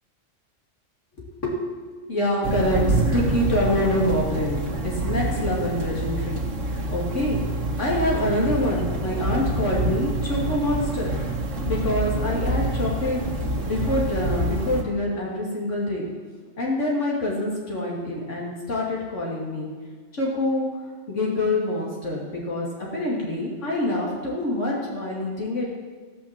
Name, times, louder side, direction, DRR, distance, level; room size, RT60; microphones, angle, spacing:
voice 1, 1.4-6.4 6.9-7.4 7.8-11.1 11.7-13.2 13.6-16.1 16.6-19.7 20.1-20.6 21.1-25.7, left 1 dB, 75° left, -3 dB, 2.8 m, -26 dB
sound 1, 2.4-14.8, right 2 dB, 85° right, 1.7 m, -27 dB
15.5 x 5.8 x 7.4 m, 1.5 s
omnidirectional pair, 1.3 m